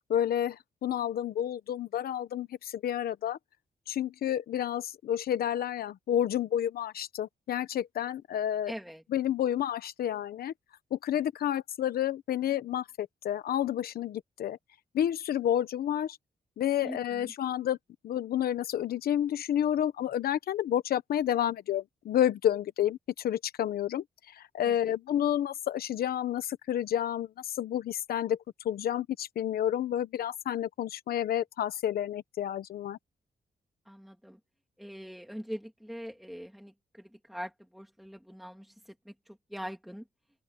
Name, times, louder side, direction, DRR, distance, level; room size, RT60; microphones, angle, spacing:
voice 1, 0.1-0.6 0.8-3.4 3.9-8.7 9.1-10.5 10.9-14.6 14.9-16.2 16.6-17.8 18.0-23.0 23.2-24.0 24.5-28.4 28.6-33.0, left 10 dB, 90° left, 1.1 m, -30 dB
voice 2, 8.7-9.0 16.8-17.3 24.6-25.0 33.9-34.4 34.8-40.0, equal, ahead, 1.7 m, -43 dB
open air
wide cardioid pair, 155°, 15 cm